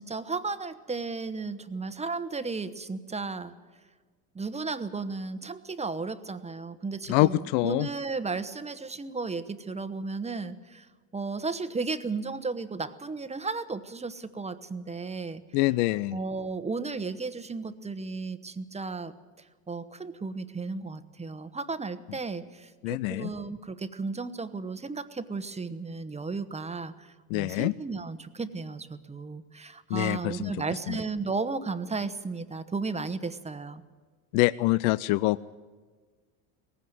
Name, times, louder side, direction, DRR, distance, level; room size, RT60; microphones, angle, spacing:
voice 1, 0.0-3.5 4.3-15.4 16.1-19.1 19.4-33.8, right 4 dB, 15° right, 12 dB, 1.0 m, -34 dB
voice 2, 7.1-7.9 15.5-16.2 22.8-23.3 27.3-27.7 29.9-30.5 30.9-31.0 34.3-35.5, left 19 dB, 75° left, 18 dB, 0.6 m, -25 dB
18.5 x 16.0 x 9.3 m, 1.5 s
supercardioid pair, 100°, 47 cm